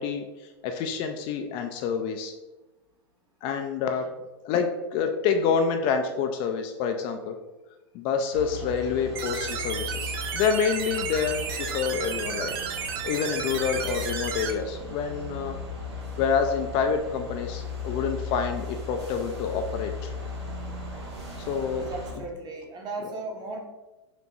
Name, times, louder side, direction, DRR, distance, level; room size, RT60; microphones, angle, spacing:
voice 1, 0.0-2.3 3.4-4.1 4.4-7.4 7.9-15.6 16.2-20.1 21.4-21.8, left 6 dB, 40° left, 6 dB, 0.4 m, -28 dB
sound 1, 8.3-22.1, left 3 dB, 80° right, 1.4 m, -37 dB
sound 2, 9.2-14.5, right 7 dB, 55° right, 0.5 m, -33 dB
voice 2, 21.8-23.7, right 2 dB, 30° right, 1 dB, 0.9 m, -36 dB
4.4 x 2.9 x 2.7 m, 1.1 s
hypercardioid pair, 100°, 14 cm